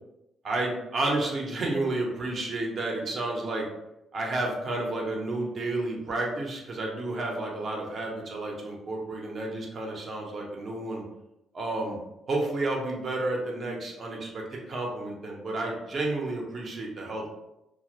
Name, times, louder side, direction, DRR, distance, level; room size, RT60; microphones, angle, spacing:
voice 1, 0.4-3.7 4.1-11.0 11.5-12.0 12.3-17.3, right 2 dB, 50° right, -1 dB, 0.7 m, -31 dB
2.2 x 2.0 x 2.8 m, 0.90 s
cardioid pair, 90°, 0 cm